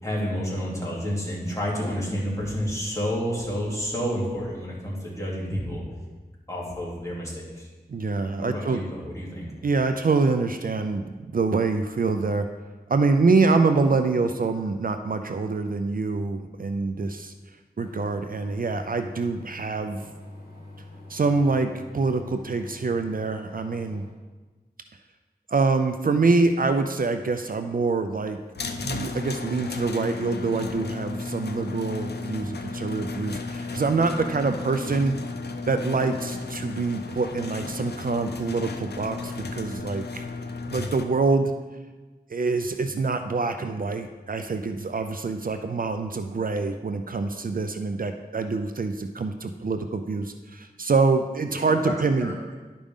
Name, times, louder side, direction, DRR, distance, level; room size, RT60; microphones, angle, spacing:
voice 1, 0.0-5.8 6.5-7.7 8.4-9.4 51.5-52.4, equal, 20° left, -6 dB, 2.8 m, -30 dB
voice 2, 7.9-8.8 9.6-12.5 12.9-17.3 17.8-20.1 21.1-24.0 25.5-28.4 28.8-35.2 35.7-40.2 40.7-41.5 42.3-52.3, right 4 dB, 60° right, 7 dB, 0.5 m, -25 dB
sound 1, 17.8-24.1, left 2 dB, 65° left, 2.7 m, -44 dB
sound 2, 28.5-41.0, left 3 dB, 90° left, 0.5 m, -34 dB
11.5 x 5.1 x 3.6 m, 1.3 s
wide cardioid pair, 45°, 17 cm